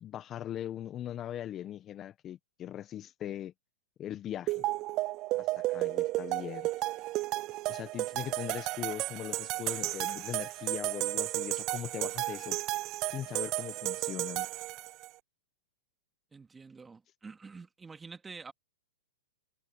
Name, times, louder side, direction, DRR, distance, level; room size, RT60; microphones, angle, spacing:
voice 1, 0.0-3.5 4.0-4.6 5.4-6.7 7.7-12.6 13.1-14.5, left 11 dB, 25° left, 1.4 m, -40 dB
sound 1, 4.5-15.1, right 18 dB, 35° right, 0.4 m, -33 dB
voice 2, 16.3-18.5, right 4 dB, 10° right, 3.0 m, -47 dB
hypercardioid pair, 125°, 0 cm